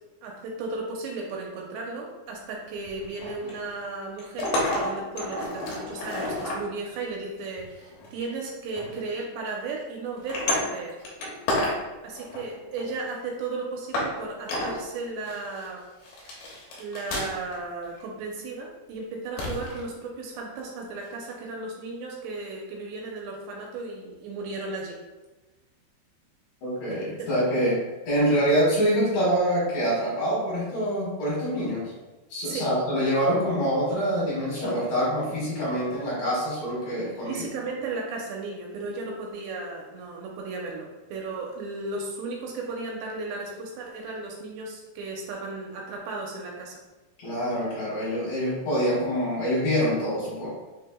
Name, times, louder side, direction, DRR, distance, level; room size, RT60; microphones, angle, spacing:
voice 1, 0.2-10.9 12.0-15.9 16.8-25.0 26.9-27.3 32.4-32.7 37.2-46.8, right 3 dB, 80° right, -1 dB, 2.9 m, -35 dB
sound 1, 2.9-3.7 4.2-6.6 7.6-8.3 8.8-9.0 9.5-9.7 10.2-11.8 12.1-13.0 13.4-13.5 13.9-14.1 14.5-14.8 15.2-15.7 16.0-17.5 17.8-18.0 19.4-19.8 21.3-21.4, left 1 dB, 80° left, 1.9 m, -30 dB
voice 2, 26.6-31.9 32.3-37.5 47.2-50.5, equal, 60° left, -7 dB, 2.9 m, -25 dB
6.3 x 3.3 x 2.2 m, 1.2 s
omnidirectional pair, 5.1 m